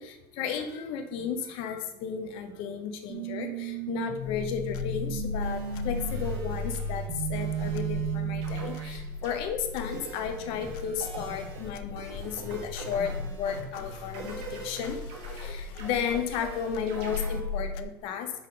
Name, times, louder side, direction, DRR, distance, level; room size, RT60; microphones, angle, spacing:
voice 1, 0.0-18.3, left 7 dB, 55° left, 7 dB, 0.9 m, -34 dB
sound 1, 3.1-9.0, right 7 dB, 40° right, 1.6 m, -34 dB
sound 2, 4.2-17.8, left 4 dB, 70° left, 0.4 m, -38 dB
sound 3, 5.4-7.1 7.3-8.2 8.4-9.4 9.8-17.4, right 2 dB, 60° right, 1.6 m, -44 dB
5.8 x 4.1 x 5.3 m, 0.90 s
cardioid pair, 155°, 11 cm